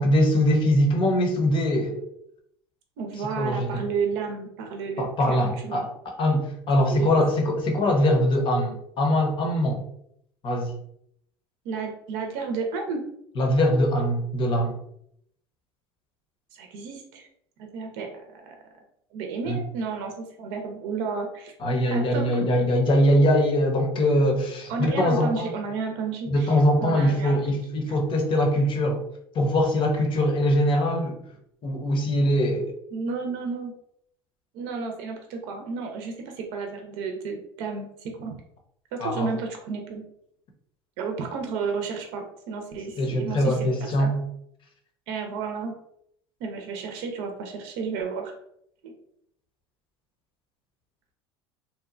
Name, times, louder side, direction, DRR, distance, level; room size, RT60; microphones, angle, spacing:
voice 1, 0.0-2.0 3.4-3.9 5.0-5.9 6.2-9.8 10.4-10.7 13.4-14.7 19.5-19.6 21.6-25.5 26.3-29.0 29.3-31.2 31.6-32.7 39.0-39.3 43.0-44.2, equal, 40° left, 2 dB, 0.7 m, -22 dB
voice 2, 3.0-5.9 6.9-7.2 11.6-13.0 16.5-17.3 17.6-18.6 19.1-20.1 20.4-21.5 21.9-22.5 24.7-27.4 32.9-33.7 34.5-38.3 38.9-40.0 41.0-44.1 45.1-45.7 46.4-48.3 48.8-48.9, right 5 dB, 65° right, 3 dB, 0.6 m, -32 dB
2.9 x 2.2 x 2.4 m, 0.72 s
hypercardioid pair, 80°, 13 cm